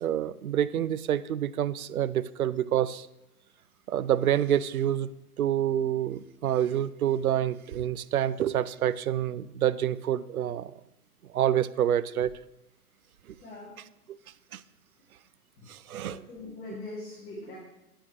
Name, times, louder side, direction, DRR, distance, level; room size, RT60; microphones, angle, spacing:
voice 1, 0.0-3.1 3.9-5.1 5.4-10.7 11.3-12.3 14.5-14.6 15.7-16.2 16.7-16.8, right 10 dB, 65° right, 16 dB, 0.5 m, -27 dB
voice 2, 13.4-13.8 15.6-15.7 16.0-17.5, left 2 dB, 20° left, -7 dB, 1.8 m, -42 dB
8.8 x 8.8 x 2.9 m, 0.89 s
figure-of-eight pair, 125°, 46 cm